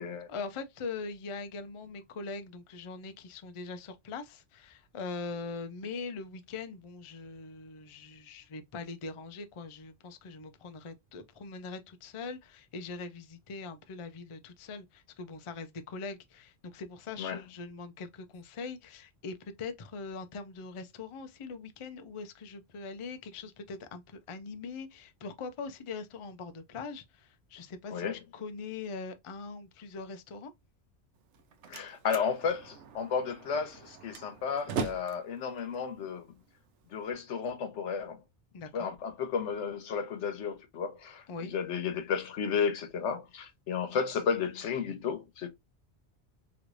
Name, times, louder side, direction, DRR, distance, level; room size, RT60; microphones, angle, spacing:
voice 1, 0.3-30.5 38.5-38.9 41.3-41.5, left 4 dB, 45° left, 0.4 m, -42 dB
Slam, 31.2-37.1, right 5 dB, 85° right, 1.0 m, -41 dB
voice 2, 31.7-36.2 36.9-38.2 38.7-45.5, left 6 dB, 90° left, 1.1 m, -33 dB
3.1 x 3.0 x 2.5 m
omnidirectional pair, 1.2 m